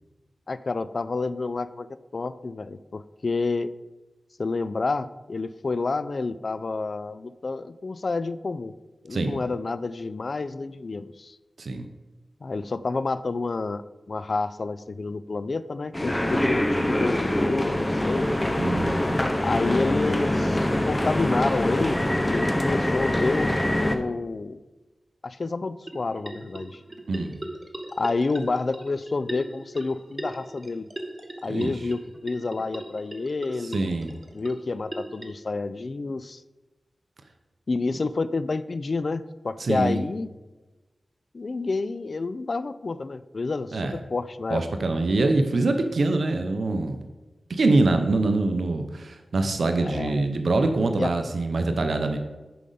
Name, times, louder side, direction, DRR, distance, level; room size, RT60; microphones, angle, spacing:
voice 1, 0.5-3.7 4.4-8.7 9.0-11.4 12.4-13.8 14.1-17.2 17.5-18.3 19.4-24.6 25.2-26.8 27.9-30.9 31.4-33.8 34.3-36.4 37.7-40.3 41.3-44.6 49.8-50.4 51.0-51.1, left 3 dB, 60° left, 15 dB, 0.3 m, -29 dB
voice 2, 9.1-9.4 11.6-11.9 18.6-19.2 27.1-27.4 31.5-31.7 33.7-34.1 39.6-40.0 43.7-43.9 44.5-47.0 47.5-52.2, right 2 dB, 75° right, 6 dB, 0.6 m, -24 dB
sound 1, 15.9-24.0, left 1 dB, 20° left, 0.8 m, -24 dB
sound 2, 25.8-35.2, right 1 dB, 25° right, 1.1 m, -39 dB
10.0 x 5.1 x 3.9 m, 1.2 s
cardioid pair, 55°, 0 cm